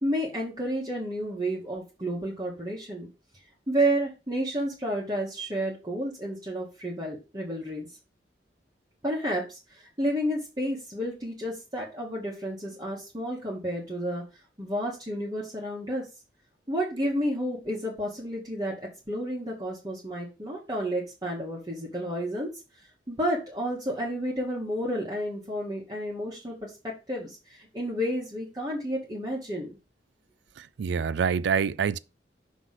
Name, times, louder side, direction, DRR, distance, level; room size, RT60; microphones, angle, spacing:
voice 1, 0.0-3.1 3.7-7.9 9.0-14.2 14.6-16.1 16.7-22.5 23.1-29.7, equal, 25° right, 1.4 m, -31 dB
voice 2, 30.6-32.0, right 6 dB, 80° right, 0.4 m, -26 dB
6.0 x 3.1 x 5.7 m
head